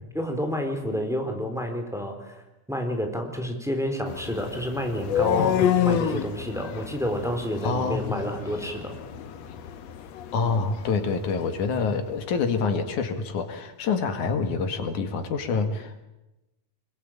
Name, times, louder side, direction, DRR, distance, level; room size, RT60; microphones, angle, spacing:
voice 1, 0.1-2.3 2.7-9.0, equal, ahead, 4 dB, 3.6 m, -29 dB
sound 1, 4.1-12.0, left 9 dB, 65° left, 2.3 m, -29 dB
voice 2, 7.6-8.2 10.3-16.0, left 5 dB, 85° left, 7 dB, 3.6 m, -27 dB
24.5 x 22.5 x 8.8 m, 0.97 s
omnidirectional pair, 3.4 m